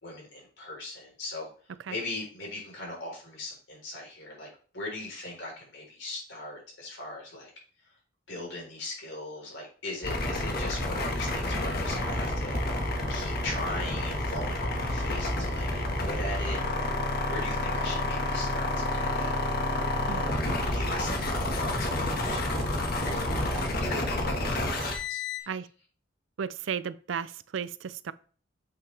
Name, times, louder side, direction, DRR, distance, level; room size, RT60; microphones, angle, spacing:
voice 1, 0.0-4.5 4.7-7.5 7.8-8.0 8.3-12.6 13.1-19.3 20.1-20.3 20.7-22.8 23.0-25.5, left 2 dB, 70° left, 3.9 m, -39 dB
sound 1, 10.0-25.4, left 1 dB, 50° left, 1.6 m, -29 dB
voice 2, 20.1-20.5 25.5-25.7 26.4-28.1, right 7 dB, 80° right, 0.4 m, -34 dB
7.8 x 5.7 x 3.4 m
head